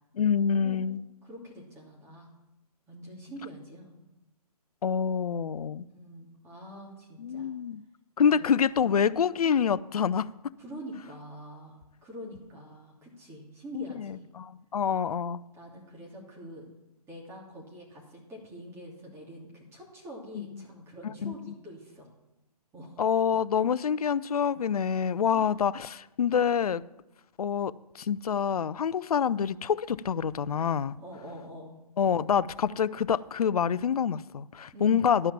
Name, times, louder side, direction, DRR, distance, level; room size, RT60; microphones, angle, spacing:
voice 1, 0.2-1.0 4.8-5.8 7.2-7.8 8.2-10.3 13.7-15.4 20.4-20.6 21.0-21.3 23.0-26.8 27.4-30.9 32.0-35.3, left 7 dB, 70° left, 0.5 m, -27 dB
voice 2, 1.2-2.3 2.9-3.9 5.9-7.5 8.2-8.6 10.6-14.2 15.5-16.7 17.1-22.1 22.7-23.0 25.3-25.5 31.0-31.7 34.7-35.1, equal, 15° right, 2.9 m, -45 dB
12.0 x 5.7 x 7.2 m
figure-of-eight pair, 140°, 20 cm